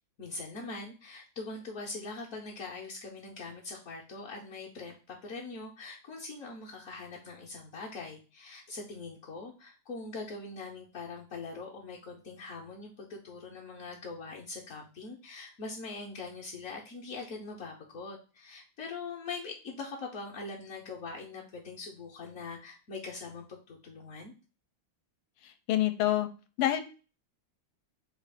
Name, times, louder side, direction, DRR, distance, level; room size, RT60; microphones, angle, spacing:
voice 1, 0.2-24.3, left 3 dB, 60° left, -4 dB, 0.9 m, -42 dB
voice 2, 25.7-26.3 26.6-26.8, left 13 dB, 80° left, 9 dB, 1.4 m, -26 dB
4.2 x 2.5 x 4.8 m, 0.34 s
omnidirectional pair, 2.4 m